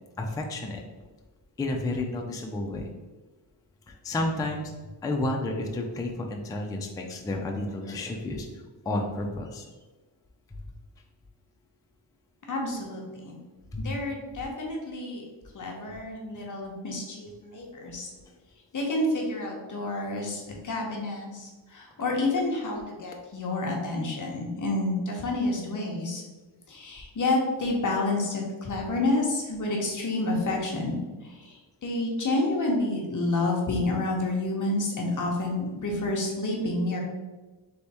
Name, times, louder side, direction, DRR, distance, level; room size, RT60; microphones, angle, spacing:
voice 1, 0.2-0.8 1.6-2.9 3.9-4.7 5.0-8.5 8.9-9.6 13.7-13.8, left 2 dB, 10° left, 2 dB, 0.3 m, -31 dB
voice 2, 12.5-13.4 13.8-15.2 15.5-18.1 18.7-26.2 26.7-31.0 31.2-37.0, left 2 dB, 40° left, -1 dB, 0.9 m, -29 dB
3.5 x 3.4 x 4.1 m, 1.2 s
wide cardioid pair, 155°, 45 cm